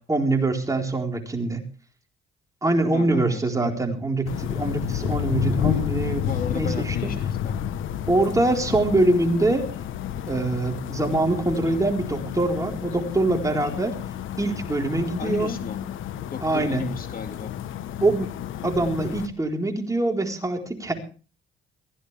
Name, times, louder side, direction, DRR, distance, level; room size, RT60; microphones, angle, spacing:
voice 1, 0.1-1.6 2.6-7.1 8.1-9.7 10.3-13.9 14.4-15.5 16.4-16.9 18.0-18.3 18.6-20.9, right 2 dB, 15° right, 2 dB, 4.2 m, -24 dB
voice 2, 2.9-3.8 6.2-7.6 15.2-15.8 16.3-17.5, left 6 dB, 45° left, 6 dB, 2.3 m, -35 dB
sound 1, 4.3-19.3, left 10 dB, 80° left, 1.2 m, -30 dB
22.5 x 16.0 x 3.4 m, 0.37 s
cardioid pair, 90°, 20 cm